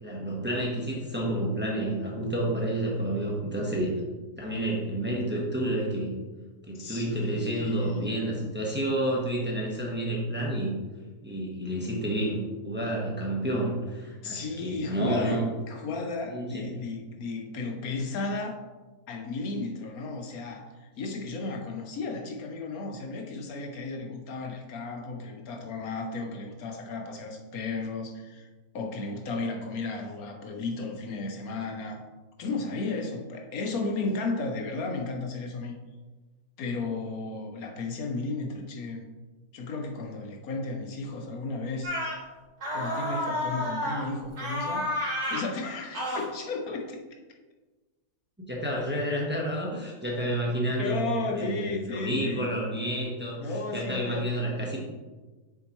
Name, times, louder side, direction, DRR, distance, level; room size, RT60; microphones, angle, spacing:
voice 1, 0.0-3.9 4.4-6.1 6.7-10.7 11.2-15.5 16.3-16.7 48.5-53.4 53.7-54.8, right 1 dB, 10° right, -3 dB, 1.1 m, -30 dB
voice 2, 6.7-8.3 14.2-18.6 19.1-28.5 28.7-32.0 32.4-35.8 36.6-39.1 39.5-42.0 42.7-44.9 45.3-47.0 50.8-52.5 53.4-54.3, left 3 dB, 75° left, 2 dB, 1.3 m, -34 dB
sound 1, 41.8-42.2 42.6-44.1 44.4-45.5 45.9-46.2, left 1 dB, 85° right, 3.1 m, -30 dB
7.2 x 6.4 x 3.1 m, 1.3 s
omnidirectional pair, 1.6 m